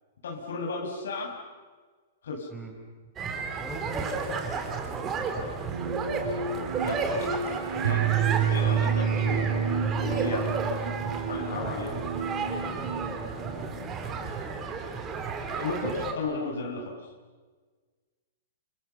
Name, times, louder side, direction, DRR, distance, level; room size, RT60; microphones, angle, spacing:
voice 1, 0.2-1.4 2.2-2.5 6.8-7.1 7.8-9.6 9.9-10.5 11.3-11.9 15.6-17.0, left 3 dB, 90° left, 1 dB, 6.4 m, -34 dB
sound 1, 3.2-16.1, right 4 dB, 15° right, 3.0 m, -33 dB
voice 2, 3.6-6.0 11.5-14.6, right 1 dB, ahead, -2 dB, 6.3 m, -43 dB
sound 2, 5.7-13.9, right 7 dB, 70° right, 5.5 m, -29 dB
sound 3, 5.8-10.8, right 4 dB, 35° right, 7.4 m, -46 dB
29.5 x 28.0 x 7.0 m, 1.4 s
hypercardioid pair, 170°, 0 cm